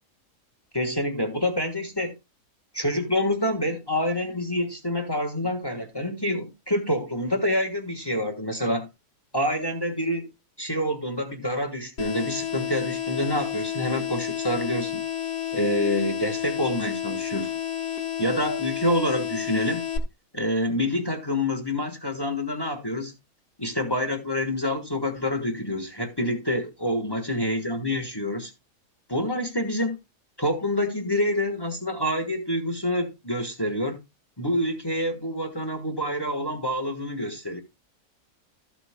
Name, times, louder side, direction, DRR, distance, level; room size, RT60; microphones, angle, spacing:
voice 1, 0.7-2.1 2.7-8.9 9.3-10.3 10.6-15.0 15.5-17.5 18.2-19.8 20.3-23.1 23.6-28.5 29.1-30.0 30.4-34.0 34.4-37.6, left 1 dB, 15° left, 1.4 m, -27 dB
sound 1, 12.0-20.0, left 10 dB, 90° left, 1.9 m, -31 dB
14.0 x 8.1 x 2.2 m
omnidirectional pair, 1.7 m